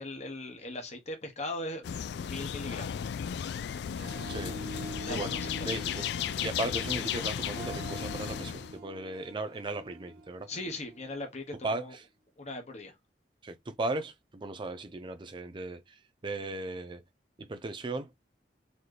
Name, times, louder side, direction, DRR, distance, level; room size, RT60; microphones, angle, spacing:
voice 1, 0.0-1.8 2.1-2.9 5.0-5.7 10.5-12.0 12.4-12.9, left 2 dB, 40° left, 1.1 m, -39 dB
sound 1, 1.8-8.8, left 8 dB, 65° left, 0.3 m, -35 dB
Harp, 3.8-11.2, right 2 dB, 65° right, 0.8 m, -46 dB
voice 2, 4.3-5.4 5.7-6.1 6.4-10.5 11.6-11.9 13.4-16.0 16.2-17.0 17.4-18.1, right 2 dB, 25° right, 0.5 m, -36 dB
4.1 x 3.0 x 3.3 m
head